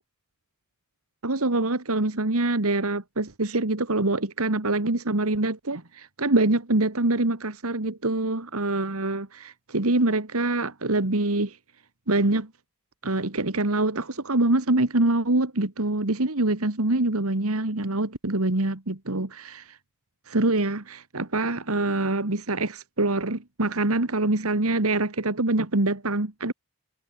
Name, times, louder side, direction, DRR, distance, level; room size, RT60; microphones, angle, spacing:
voice 1, 1.2-11.6 12.1-12.5 13.0-19.7 20.3-26.5, right 2 dB, 80° right, 2.1 m, -25 dB
head